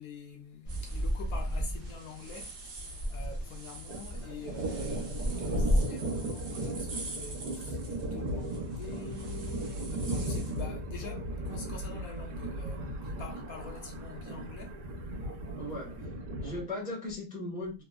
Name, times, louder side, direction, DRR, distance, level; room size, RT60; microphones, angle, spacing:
voice 1, 0.0-14.8, left 5 dB, 70° left, 1.0 m, -46 dB
sound 1, 0.6-2.4 2.7-5.8, equal, 35° left, 0.6 m, -32 dB
sound 2, 0.7-10.6, right 3 dB, 65° right, 1.2 m, -47 dB
Thunder, 1.0-1.2 1.5-1.6 1.9-3.4 3.7-16.6, right 1 dB, 90° right, 1.3 m, -37 dB
voice 2, 15.6-17.8, left 1 dB, 10° right, 0.6 m, -38 dB
3.3 x 2.0 x 2.3 m
omnidirectional pair, 1.7 m